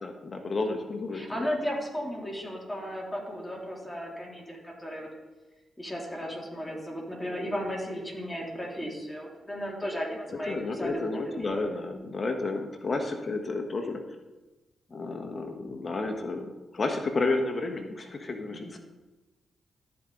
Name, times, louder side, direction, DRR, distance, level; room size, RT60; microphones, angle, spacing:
voice 1, 0.0-1.5 10.1-10.2 10.5-14.0 14.9-18.8, left 3 dB, 45° left, 4 dB, 1.3 m, -31 dB
voice 2, 1.1-5.1 5.8-11.5 14.9-15.1 18.5-18.8, equal, 15° left, -2 dB, 3.0 m, -35 dB
14.0 x 5.0 x 3.9 m, 1.1 s
hypercardioid pair, 40°, 0 cm